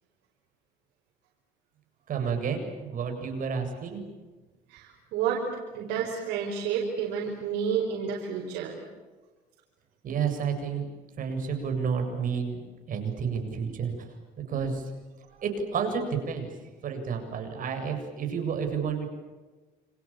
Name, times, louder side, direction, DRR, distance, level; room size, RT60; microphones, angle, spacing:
voice 1, 2.1-4.0 10.0-10.9 11.2-12.6 12.9-13.9 14.5-14.9 15.4-16.5 16.8-19.1, right 6 dB, 55° right, 5 dB, 7.5 m, -30 dB
voice 2, 4.7-5.5 5.7-8.8 14.5-14.6, right 7 dB, 90° right, -2 dB, 5.7 m, -30 dB
29.5 x 27.5 x 7.3 m, 1.3 s
cardioid pair, 110°, 17 cm